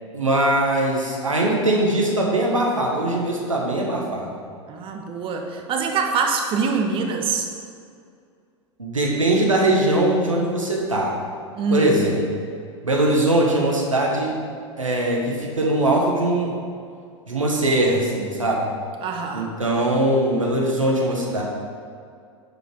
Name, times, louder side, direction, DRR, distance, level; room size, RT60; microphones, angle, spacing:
voice 1, 0.1-4.3 8.8-11.2 11.7-12.2 12.8-14.3 14.8-16.6 17.3-18.7 19.3-21.4, right 1 dB, 85° right, -2 dB, 1.6 m, -21 dB
voice 2, 4.7-7.5 11.5-12.0 19.0-19.5, right 4 dB, 35° right, 3 dB, 1.2 m, -24 dB
9.8 x 5.4 x 5.0 m, 2.3 s
figure-of-eight pair, 90°, 16 cm